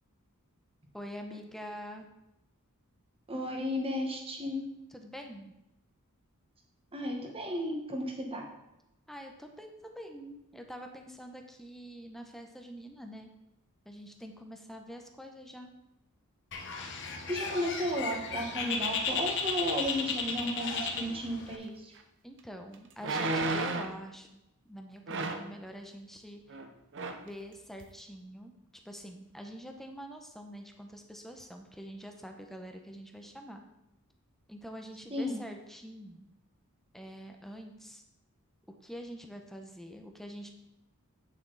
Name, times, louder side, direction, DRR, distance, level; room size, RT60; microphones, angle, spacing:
voice 1, 0.9-2.1 4.9-5.5 9.1-13.3 13.8-15.7 22.2-24.4 24.7-26.6 27.1-28.5 28.8-33.6 34.5-36.3 36.9-38.0 38.8-40.5, equal, ahead, 4 dB, 0.8 m, -45 dB
voice 2, 3.3-4.6 6.9-8.4 17.3-21.9 35.1-35.4, equal, 25° right, 2 dB, 1.4 m, -34 dB
Bird, 16.5-21.6, left 5 dB, 55° left, 1.0 m, -35 dB
sound 1, 22.0-22.1 23.0-24.0 25.1-25.5 26.5-26.7 26.9-27.3 27.8-27.9, right 2 dB, 55° right, 0.7 m, -32 dB
8.4 x 7.2 x 4.0 m, 0.91 s
head